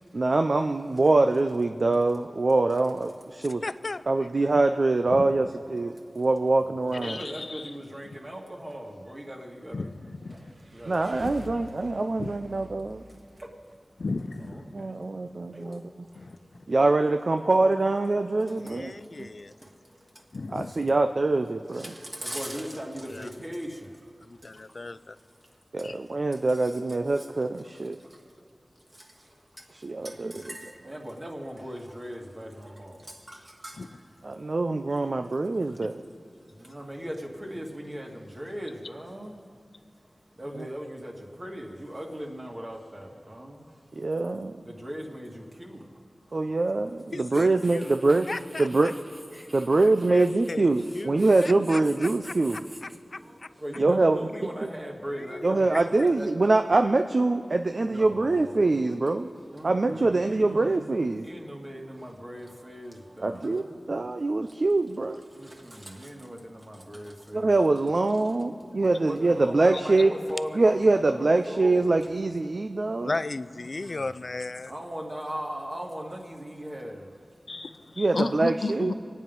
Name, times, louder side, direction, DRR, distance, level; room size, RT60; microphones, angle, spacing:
voice 1, 0.1-3.6 4.1-7.2 10.8-13.0 14.7-15.8 16.7-18.9 19.2-19.3 20.5-21.9 25.7-28.0 29.8-30.4 34.2-36.0 40.6-40.7 44.0-44.5 46.3-48.3 48.6-48.9 49.5-52.7 53.8-54.3 55.4-59.3 59.6-61.3 63.2-65.2 67.3-70.1 70.5-73.2 78.0-78.9, right 2 dB, 60° right, 6 dB, 0.5 m, -24 dB
voice 2, 3.6-4.3 18.6-19.5 23.1-23.3 24.2-25.2 47.1-47.9 48.3-48.9 49.4-49.5 50.1-50.7 50.9-52.3 53.1-53.2 55.3-56.1 73.0-74.7, left 3 dB, 55° left, 15 dB, 0.4 m, -36 dB
voice 3, 6.4-9.9 10.3-10.4 10.7-11.7 13.4-13.5 14.4-15.0 15.5-15.7 16.7-16.9 18.7-18.8 21.7-23.9 26.5-26.7 27.2-27.3 29.0-29.1 30.0-33.8 36.6-39.4 40.4-41.1 41.4-43.6 44.7-45.8 47.3-50.3 50.8-51.7 52.0-52.8 53.2-56.3 57.8-58.7 59.5-63.8 65.3-67.9 68.8-72.0 73.5-74.2 74.7-77.1, equal, 35° right, 0 dB, 2.2 m, -40 dB
voice 4, 7.0-7.7 9.7-10.5 11.2-11.4 12.2-12.4 14.0-14.8 16.1-16.4 20.3-20.7 25.8-26.0 33.8-33.9 77.5-78.9, left 3 dB, 75° left, 8 dB, 0.7 m, -34 dB
sound 1, 10.1-13.7, right 1 dB, 75° right, 1.2 m, -47 dB
25.0 x 9.3 x 5.4 m, 2.5 s
wide cardioid pair, 65°, 0 cm